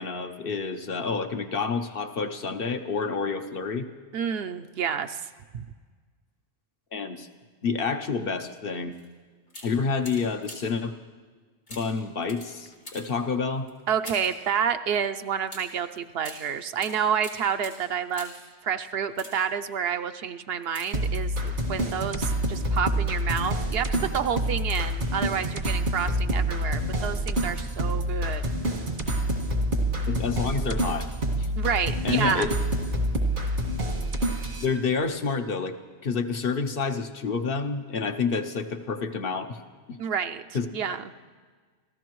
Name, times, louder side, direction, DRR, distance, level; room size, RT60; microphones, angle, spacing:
voice 1, 0.0-3.9 6.9-7.3 7.6-8.9 9.6-10.9 11.7-13.7 30.1-31.1 31.3-31.5 32.0-32.5 34.6-35.8 36.0-39.6 39.9-40.0 40.5-40.7, left 5 dB, 60° left, 7 dB, 1.0 m, -28 dB
voice 2, 4.1-5.2 5.5-5.6 13.9-18.3 18.6-28.4 31.6-32.5 40.0-40.4 40.7-41.0, right 7 dB, 65° right, 9 dB, 0.8 m, -29 dB
sound 1, 8.9-9.1 9.5-10.9 11.7-14.4 15.5-18.5 19.0-19.7 20.6-21.5 22.1-22.4 22.9-23.7 24.6-25.1 25.3-25.4, equal, 90° left, 4.1 m, -45 dB
sound 2, 20.9-34.7, right 1 dB, 85° right, 2.2 m, -27 dB
29.5 x 14.5 x 3.1 m, 1.5 s
omnidirectional pair, 1.1 m